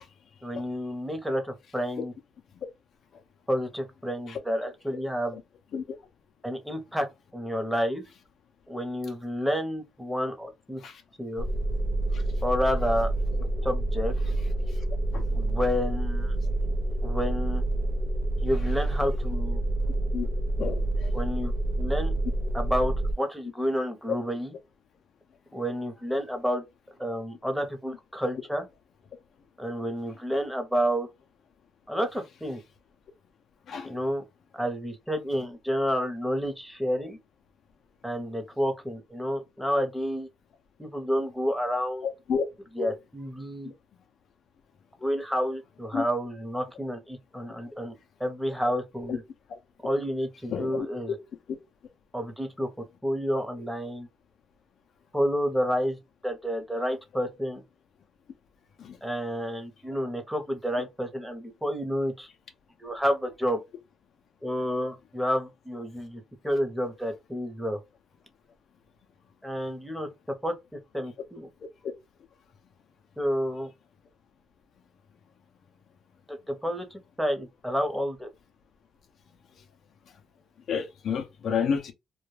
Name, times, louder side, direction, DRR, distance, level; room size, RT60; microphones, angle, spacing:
voice 1, 0.4-2.1 3.5-5.4 6.4-7.1 7.3-8.0 8.7-10.8 11.2-11.5 12.4-13.1 13.6-14.1 15.3-16.3 17.0-17.6 18.4-19.6 21.1-21.5 21.8-22.1 22.5-24.5 25.5-26.6 27.0-28.7 29.6-31.1 31.9-32.6 33.8-34.2 34.5-37.2 38.0-40.3 40.8-42.1 42.8-43.7 45.0-49.2 49.8-51.1 52.1-52.7 53.0-54.1 55.1-56.0 56.2-57.6 59.0-62.3 62.8-63.6 64.4-67.8 69.4-70.1 70.4-70.5 70.9-71.5 73.2-73.7 76.3-78.3, equal, 5° right, 0.8 m, -30 dB
sound 1, 11.4-23.1, right 1 dB, 50° right, 0.4 m, -28 dB
voice 2, 20.6-21.1 33.7-33.9 42.0-42.5 42.8-42.9 45.9-46.0 49.1-49.2 50.5-50.9 51.5-51.6 58.8-59.0 80.7-81.9, left 6 dB, 65° left, 0.5 m, -30 dB
2.3 x 2.2 x 3.1 m
cardioid pair, 90°, 0 cm